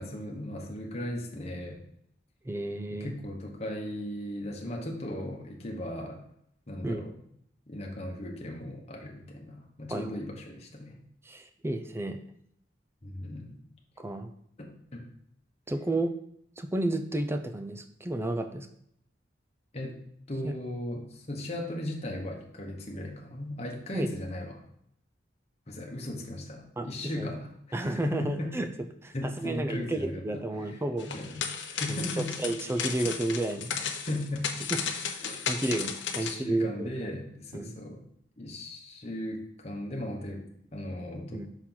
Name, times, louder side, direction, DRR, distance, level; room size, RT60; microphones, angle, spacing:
voice 1, 0.0-1.8 2.9-6.2 6.7-7.2 7.7-11.0 13.0-13.6 14.6-15.1 19.7-20.0 20.3-24.6 25.7-28.5 29.1-30.2 30.6-30.8 31.1-32.4 33.7-34.5 35.2-35.4 36.2-38.0 38.4-40.4 40.7-41.5, left 1 dB, 35° left, 0 dB, 1.0 m, -37 dB
voice 2, 2.4-3.1 6.8-7.0 9.9-10.1 11.2-12.2 14.0-14.3 15.7-16.1 16.6-18.7 20.4-20.5 23.9-24.1 26.8-27.3 27.7-28.7 29.0-31.1 31.9-32.0 32.4-33.8 34.7-34.8 35.5-37.1 37.5-37.7 41.3-41.5, right 2 dB, 15° right, 7 dB, 0.4 m, -31 dB
sound 1, 31.0-36.4, left 6 dB, 90° left, 0.7 m, -34 dB
6.2 x 4.4 x 3.8 m, 0.71 s
head